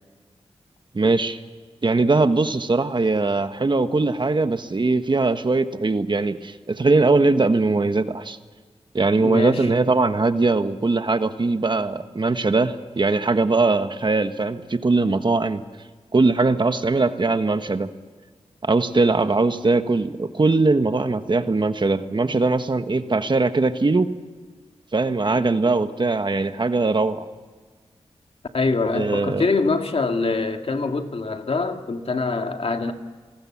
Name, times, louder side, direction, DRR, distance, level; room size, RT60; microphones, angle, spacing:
voice 1, 0.9-1.4 1.8-8.4 8.9-15.6 16.1-17.9 18.6-24.1 24.9-27.3 28.9-29.4, right 3 dB, 45° right, 1.4 m, -21 dB
voice 2, 9.2-9.7 28.5-32.9, left 3 dB, 55° left, 2.0 m, -24 dB
28.0 x 19.0 x 7.4 m
cardioid pair, 50°, 12 cm